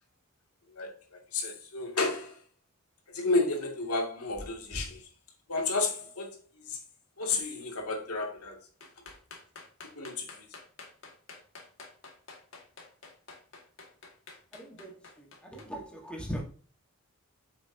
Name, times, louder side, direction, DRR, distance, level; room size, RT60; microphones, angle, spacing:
voice 1, 1.3-2.4 3.1-5.0 5.5-6.4 6.7-6.8 7.2-8.6 9.9-10.3, left 3 dB, 85° left, 2.6 m, -31 dB
sound 1, 8.8-15.6, left 3 dB, 55° left, 2.0 m, -49 dB
voice 2, 14.5-16.4, equal, 5° left, 1.5 m, -40 dB
9.1 x 6.8 x 2.9 m
head